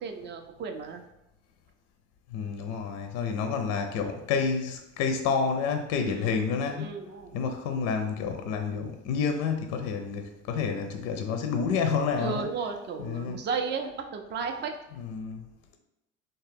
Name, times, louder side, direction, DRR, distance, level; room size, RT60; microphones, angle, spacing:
voice 1, 0.0-1.0 6.1-6.4 6.8-7.4 12.2-14.7, right 5 dB, 30° right, 5 dB, 0.4 m, -34 dB
voice 2, 2.3-6.9 7.3-12.5 13.0-13.4 15.0-15.5, left 5 dB, 45° left, 5 dB, 0.4 m, -29 dB
3.4 x 2.2 x 3.3 m, 0.87 s
figure-of-eight pair, 60°, 37 cm